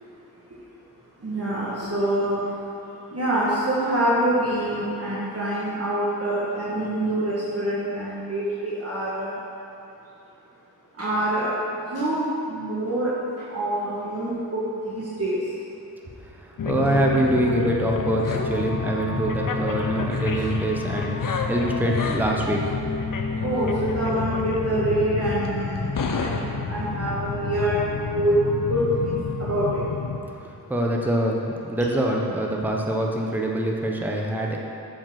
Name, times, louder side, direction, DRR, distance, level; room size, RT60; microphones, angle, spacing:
voice 1, 1.2-2.4 3.1-9.3 11.0-11.5 11.9-13.1 13.5-15.4 23.4-27.8 28.1-28.3 28.7-29.8, right 1 dB, 35° right, -8 dB, 1.5 m, -26 dB
voice 2, 16.4-21.2 21.5-22.6 30.7-34.6, right 1 dB, 5° right, -1 dB, 0.9 m, -24 dB
sound 1, 16.6-30.2, left 4 dB, 50° left, 0.7 m, -28 dB
7.2 x 4.8 x 5.9 m, 2.8 s
cardioid pair, 55°, 43 cm